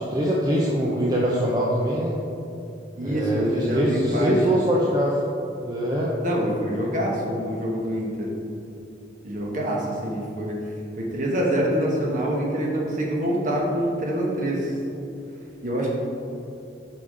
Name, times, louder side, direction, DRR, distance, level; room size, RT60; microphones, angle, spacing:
voice 1, 0.0-2.1 3.0-5.2 5.6-6.1, equal, 20° right, -5 dB, 0.6 m, -23 dB
voice 2, 3.0-4.6 6.2-8.3 9.2-10.6 11.0-14.7 15.6-15.9, right 1 dB, 40° right, -2 dB, 1.2 m, -25 dB
5.8 x 5.6 x 4.9 m, 2.7 s
head